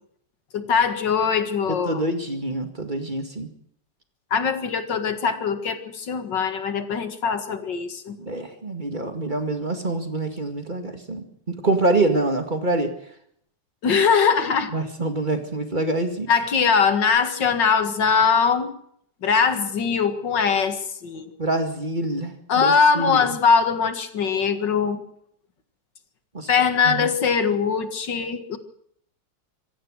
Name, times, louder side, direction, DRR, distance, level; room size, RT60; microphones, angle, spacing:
voice 1, 0.5-2.0 4.3-8.2 13.8-14.7 16.3-18.7 19.2-21.3 22.5-25.0 26.5-28.6, left 6 dB, 85° left, 9 dB, 2.5 m, -21 dB
voice 2, 1.7-3.5 8.2-12.9 14.7-16.3 21.4-23.4 26.3-26.5 26.8-27.1, right 2 dB, 25° right, 7 dB, 2.1 m, -26 dB
25.5 x 16.0 x 6.4 m, 0.68 s
omnidirectional pair, 1.9 m